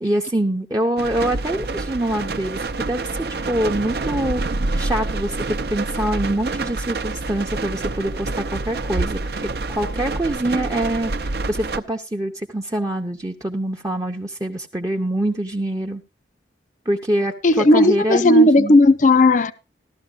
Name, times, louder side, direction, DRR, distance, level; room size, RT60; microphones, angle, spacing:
voice 1, 0.0-3.1 3.5-16.0 16.9-18.8, right 1 dB, 20° right, 0.7 m, -25 dB
sound 1, 1.0-11.8, right 3 dB, 60° right, 0.6 m, -27 dB
voice 2, 17.4-19.5, left 2 dB, 45° left, 0.5 m, -14 dB
15.0 x 12.5 x 2.4 m
head